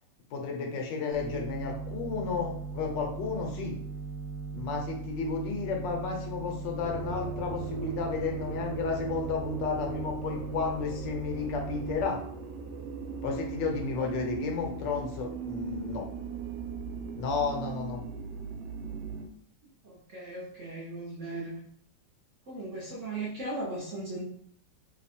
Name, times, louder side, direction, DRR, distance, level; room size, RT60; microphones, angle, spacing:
voice 1, 0.3-3.7 4.5-12.2 13.2-16.1 17.1-18.0, left 5 dB, 75° left, 1 dB, 1.4 m, -32 dB
sound 1, 1.1-12.0, right 4 dB, 35° right, 1.3 m, -38 dB
sound 2, 6.8-19.3, right 6 dB, 90° right, 1.3 m, -39 dB
voice 2, 19.8-21.5 22.5-24.2, right 2 dB, 55° right, -5 dB, 0.9 m, -37 dB
3.2 x 2.2 x 4.2 m, 0.66 s
omnidirectional pair, 2.0 m